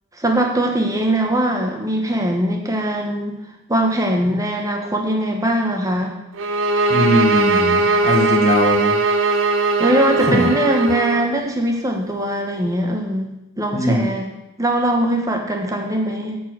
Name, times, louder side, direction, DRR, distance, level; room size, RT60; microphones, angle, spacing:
voice 1, 0.2-3.4 3.7-6.1 9.8-14.3 14.6-16.4, right 1 dB, 15° right, 2 dB, 1.2 m, -21 dB
sound 1, 6.4-11.3, right 3 dB, 65° right, 0.7 m, -19 dB
voice 2, 6.9-9.0 9.3-9.4 10.2-10.5 13.7-14.1, left 1 dB, 35° left, 3 dB, 1.0 m, -20 dB
9.0 x 4.7 x 7.6 m, 0.89 s
head